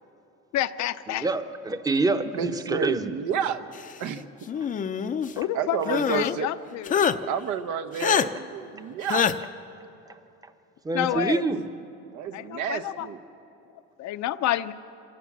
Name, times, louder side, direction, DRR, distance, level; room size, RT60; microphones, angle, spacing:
voice 1, 0.5-1.3 5.4-7.0 10.9-11.4 12.3-13.1 14.0-14.7, left 13 dB, 70° left, 11 dB, 0.7 m, -29 dB
voice 2, 1.1-3.1 5.4-5.5 10.8-11.7, right 3 dB, 10° right, 9 dB, 0.8 m, -26 dB
voice 3, 2.3-3.6 4.0-4.2 5.5-6.5 7.2-9.3 11.1-11.3 12.1-13.2, right 7 dB, 85° right, 9 dB, 1.1 m, -30 dB
sound 1, 4.5-5.3 5.9-6.4 6.9-7.2 8.0-8.3 9.1-9.3, left 7 dB, 30° left, 0.5 m, -24 dB
26.5 x 16.5 x 7.3 m, 2.9 s
cardioid pair, 155°, 29 cm